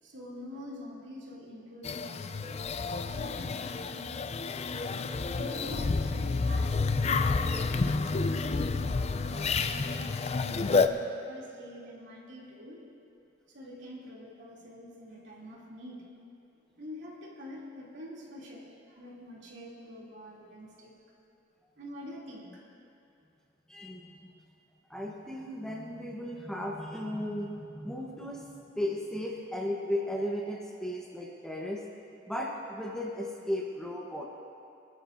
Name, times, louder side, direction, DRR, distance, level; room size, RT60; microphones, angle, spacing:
voice 1, 0.0-4.4 5.3-12.8 13.5-16.1 16.8-20.9 21.8-22.6, left 1 dB, 65° right, -4 dB, 2.7 m, -46 dB
sound 1, 1.8-10.9, left 4 dB, 35° left, 0.4 m, -29 dB
voice 2, 23.7-24.3 24.9-28.5 28.7-31.8 32.3-34.2, left 1 dB, 5° left, -2 dB, 0.9 m, -35 dB
23.5 x 12.5 x 2.6 m, 2.6 s
head